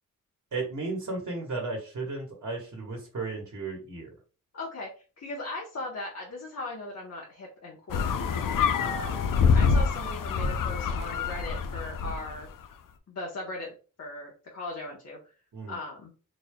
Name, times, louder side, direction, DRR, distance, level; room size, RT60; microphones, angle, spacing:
voice 1, 0.5-4.1 8.8-9.0 15.5-15.8, right 3 dB, 60° right, -1 dB, 1.3 m, -34 dB
voice 2, 4.5-4.9 5.2-8.4 8.8-9.2 9.5-12.5 13.1-15.2 15.7-16.1, left 2 dB, 50° left, -3 dB, 1.0 m, -38 dB
sound 1, 7.9-12.4, left 5 dB, 75° left, 0.5 m, -26 dB
4.2 x 3.2 x 2.2 m, 0.36 s
cardioid pair, 80°, 33 cm